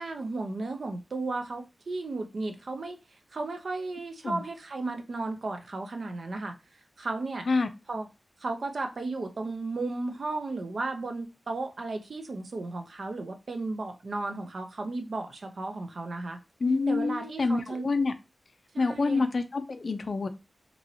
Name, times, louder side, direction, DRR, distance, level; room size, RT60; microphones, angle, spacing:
voice 1, 0.0-3.0 3.3-6.6 7.0-7.5 7.9-8.1 8.4-16.4 16.9-17.9 18.7-19.3, right 3 dB, 60° right, 0.6 m, -34 dB
voice 2, 16.6-18.1 18.8-20.3, left 3 dB, 55° left, 0.4 m, -27 dB
3.0 x 2.7 x 2.6 m
wide cardioid pair, 125°, 0 cm